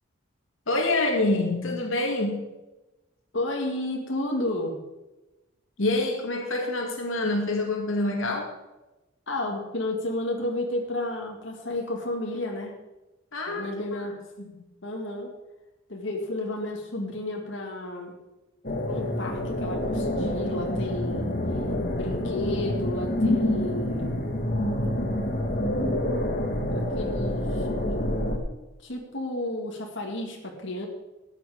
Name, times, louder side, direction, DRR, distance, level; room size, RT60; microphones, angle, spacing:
voice 1, 0.7-2.4 5.8-8.5 13.3-14.0 14.5-14.6, left 2 dB, 80° left, 2 dB, 2.1 m, -26 dB
voice 2, 3.3-4.8 9.3-12.7 13.5-14.2 14.8-15.3 15.9-18.2 18.8-21.3 21.9-24.2 24.8-24.9 26.7-27.7 28.8-30.9, left 1 dB, 65° left, 0 dB, 2.1 m, -32 dB
sound 1, 18.6-28.4, left 1 dB, 45° left, 1.6 m, -27 dB
14.0 x 9.4 x 5.0 m, 1.0 s
head